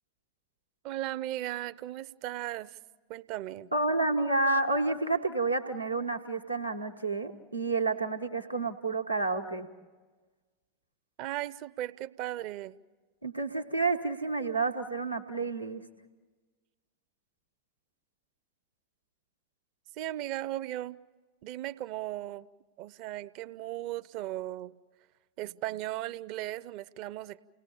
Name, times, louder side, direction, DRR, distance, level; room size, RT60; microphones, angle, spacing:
voice 1, 0.8-2.8 3.1-3.7 11.2-12.8 20.0-21.0 21.4-22.5 22.8-24.7 25.4-27.4, right 14 dB, 45° right, 17 dB, 0.6 m, -37 dB
voice 2, 3.7-9.7 13.2-15.8, right 3 dB, 90° right, 2 dB, 1.3 m, -30 dB
30.0 x 19.0 x 7.1 m, 1.3 s
figure-of-eight pair, 90°, 0 cm